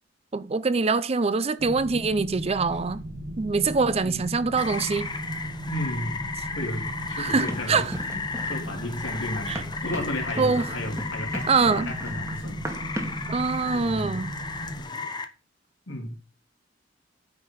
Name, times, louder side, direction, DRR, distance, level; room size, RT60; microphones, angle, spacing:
voice 1, 0.3-3.0 3.4-5.1 7.2-7.9 9.5-9.6 10.4-10.6 11.5-11.9 13.3-14.3, right 4 dB, 30° right, 0.5 m, -24 dB
sound 1, 1.6-14.8, equal, 70° right, 1.7 m, -37 dB
Rain, 4.6-15.2, left 4 dB, 25° left, 1.0 m, -35 dB
voice 2, 5.7-6.2 6.5-13.3 13.6-14.3 14.7-15.1 15.9-16.2, left 1 dB, 75° left, 3.0 m, -34 dB
Run, 7.5-13.3, equal, 15° right, 2.0 m, -38 dB
9.5 x 4.6 x 7.4 m
head